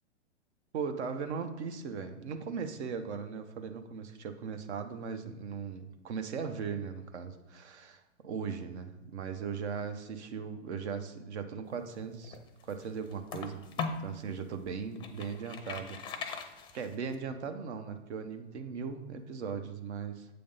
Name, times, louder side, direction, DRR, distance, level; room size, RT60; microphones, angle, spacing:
voice 1, 0.7-12.4 12.6-13.8 14.0-16.3 16.7-20.3, right 6 dB, 65° right, 7 dB, 0.9 m, -38 dB
sound 1, 12.0-14.1 14.6-17.1, left 5 dB, 15° left, 0.5 m, -40 dB
7.8 x 3.4 x 5.4 m, 1.0 s
hypercardioid pair, 130°, 35 cm